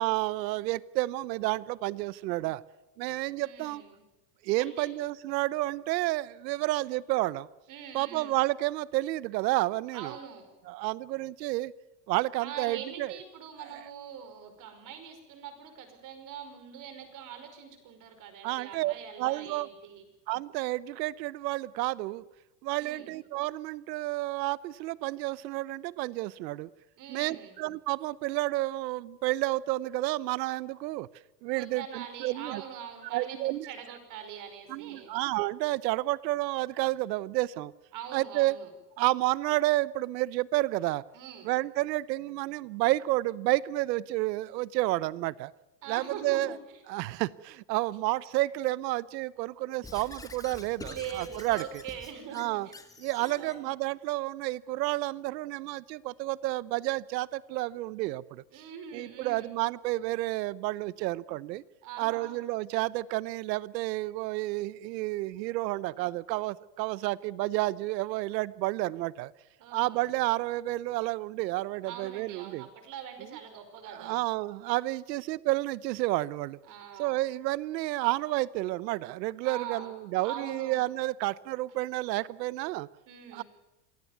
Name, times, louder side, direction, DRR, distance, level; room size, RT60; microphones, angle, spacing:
voice 1, 0.0-2.6 3.0-3.8 4.4-7.5 7.9-10.1 10.7-11.7 12.1-13.1 18.4-18.9 19.2-19.7 20.3-22.2 22.6-26.7 27.1-31.1 31.4-32.6 33.1-33.6 34.7-37.7 38.1-38.6 39.0-41.0 41.5-45.5 45.9-46.5 46.9-51.6 52.3-52.7 53.0-58.4 58.9-61.6 62.0-69.3 69.7-72.7 73.9-76.6 77.0-82.9 83.3-83.4, right 18 dB, 85° right, 20 dB, 0.9 m, -30 dB
voice 2, 3.4-4.0 4.6-4.9 7.7-8.4 9.9-10.5 12.4-20.0 22.8-23.1 27.0-27.6 31.5-35.1 37.9-38.7 41.1-41.5 45.8-46.8 50.9-52.8 53.2-53.7 58.5-59.5 61.8-62.4 69.6-70.1 71.8-74.2 76.6-77.2 79.4-80.0 80.2-80.9 83.1-83.4, right 8 dB, 40° right, 8 dB, 5.4 m, -43 dB
Squeak / Writing, 49.8-53.6, left 3 dB, 5° left, 1.6 m, -47 dB
27.0 x 17.0 x 9.4 m, 1.0 s
supercardioid pair, 155°, 49 cm